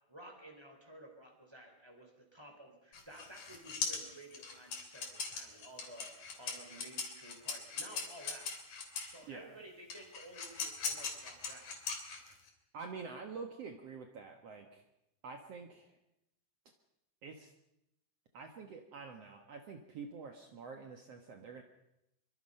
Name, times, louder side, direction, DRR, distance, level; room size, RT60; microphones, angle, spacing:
voice 1, 0.1-8.5 9.1-11.7, right 1 dB, 5° right, 3 dB, 4.3 m, -54 dB
sound 1, 2.9-9.2 9.9-12.5, left 5 dB, 60° left, 4.5 m, -40 dB
voice 2, 9.3-9.6 12.7-14.8 15.2-16.0 17.2-17.5 18.3-21.6, right 5 dB, 55° right, 4 dB, 2.3 m, -47 dB
24.0 x 24.0 x 5.6 m, 0.84 s
omnidirectional pair, 3.7 m